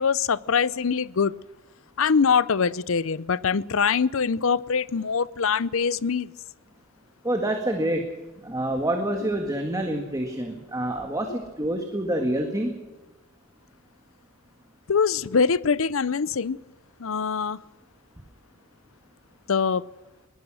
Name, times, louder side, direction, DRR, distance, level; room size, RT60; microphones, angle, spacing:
voice 1, 0.0-1.3 2.0-6.3 14.9-16.6 17.0-17.6 19.5-19.8, left 6 dB, 65° left, 20 dB, 0.6 m, -23 dB
voice 2, 7.2-12.7, right 1 dB, 15° right, 4 dB, 1.8 m, -27 dB
21.5 x 19.0 x 6.3 m, 1.1 s
head